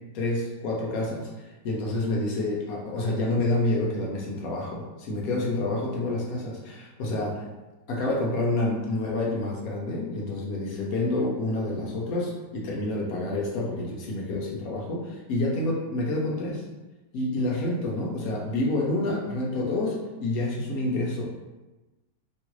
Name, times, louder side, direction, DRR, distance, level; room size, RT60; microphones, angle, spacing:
voice 1, 0.1-7.4 7.9-16.6 17.1-21.3, left 2 dB, 65° left, -2 dB, 1.0 m, -28 dB
3.0 x 2.4 x 3.0 m, 1.1 s
omnidirectional pair, 1.9 m